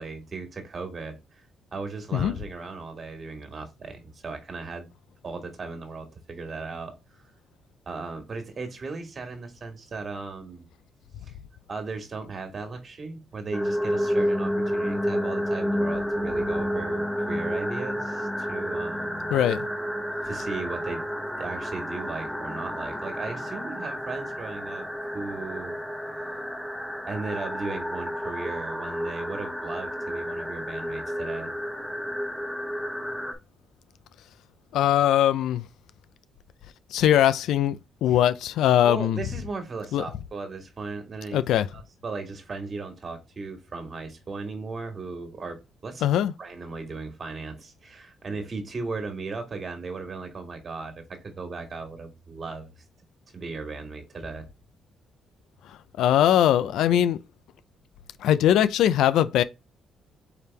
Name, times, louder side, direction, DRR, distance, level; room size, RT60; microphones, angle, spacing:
voice 1, 0.0-1.4 1.7-4.9 5.2-6.9 7.8-10.6 11.2-11.4 11.7-19.3 20.2-21.0 21.4-25.8 26.2-26.4 27.1-31.5 38.1-38.2 38.8-41.4 41.7-46.1 46.4-52.7 53.3-54.5, right 4 dB, 40° right, 1.7 m, -37 dB
sound 1, 13.5-33.3, equal, ahead, 0.9 m, -30 dB
voice 2, 19.3-19.7 34.7-35.6 36.9-39.2 39.9-40.0 41.3-41.7 46.0-46.3 56.0-57.2 58.2-59.4, left 11 dB, 85° left, 0.4 m, -21 dB
4.7 x 3.5 x 3.3 m
cardioid pair, 90°, 0 cm